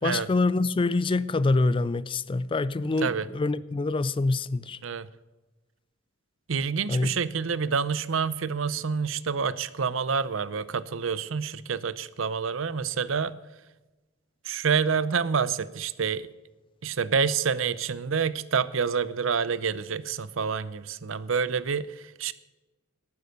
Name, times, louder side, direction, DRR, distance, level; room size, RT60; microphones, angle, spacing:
voice 1, 0.0-4.8 6.9-7.1, left 3 dB, 25° left, 0.4 m, -25 dB
voice 2, 6.5-13.3 14.4-16.3 16.8-22.3, right 6 dB, 70° right, 0.6 m, -28 dB
12.0 x 9.6 x 6.5 m
head